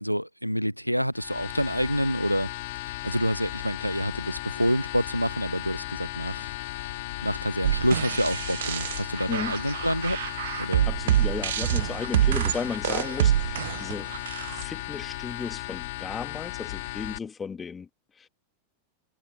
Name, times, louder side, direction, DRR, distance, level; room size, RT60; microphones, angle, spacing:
voice 1, 0.0-2.5 2.8-10.2 10.6-10.9, equal, 90° right, 0.5 m, -28 dB
sound 1, 1.1-17.2, left 19 dB, 50° left, 5.9 m, -36 dB
sound 2, 7.6-14.6, right 12 dB, 60° right, 1.0 m, -26 dB
voice 2, 10.9-14.1 14.5-17.9 18.2-18.3, left 6 dB, 15° left, 2.7 m, -35 dB
figure-of-eight pair, 90°, 0 cm